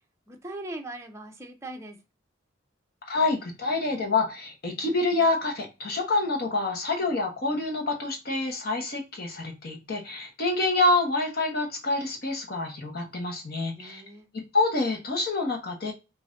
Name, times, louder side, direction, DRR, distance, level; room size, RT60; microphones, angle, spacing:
voice 1, 0.3-2.0 13.8-14.3, right 2 dB, 15° right, 3 dB, 0.6 m, -40 dB
voice 2, 3.0-14.0 14.3-15.9, left 2 dB, 50° left, 2 dB, 1.1 m, -27 dB
5.4 x 2.6 x 2.6 m, 0.28 s
head